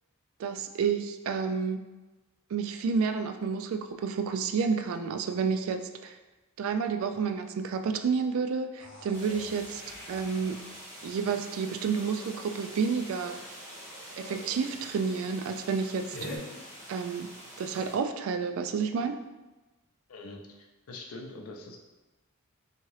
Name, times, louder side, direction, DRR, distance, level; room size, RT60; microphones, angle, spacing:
voice 1, 0.4-1.8 2.5-6.2 6.6-9.8 10.1-10.6 11.0-13.5 14.2-16.2 16.9-17.3 17.6-19.2, right 5 dB, 65° right, 8 dB, 0.3 m, -30 dB
sound 1, 8.8-15.0 16.1-16.4, left 1 dB, 60° left, 1.0 m, -47 dB
sound 2, 9.1-17.9, right 1 dB, 15° right, 1.1 m, -46 dB
voice 2, 20.1-21.8, left 2 dB, 90° left, 1 dB, 0.5 m, -44 dB
3.5 x 2.9 x 3.1 m, 1.1 s
head